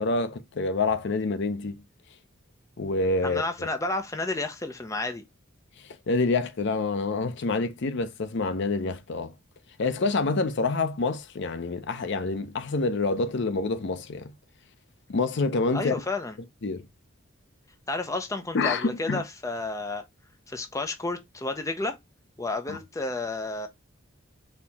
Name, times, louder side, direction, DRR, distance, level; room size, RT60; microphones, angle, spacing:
voice 1, 0.0-1.8 2.8-3.7 6.1-9.3 9.8-14.3 15.1-15.9 16.6-16.8 18.5-19.2 22.7-22.8, left 3 dB, 60° left, 0.6 m, -27 dB
voice 2, 3.2-5.2 15.7-16.4 17.9-20.0 20.5-22.0 22.4-23.7, left 2 dB, 15° left, 0.6 m, -31 dB
4.3 x 2.9 x 3.4 m
head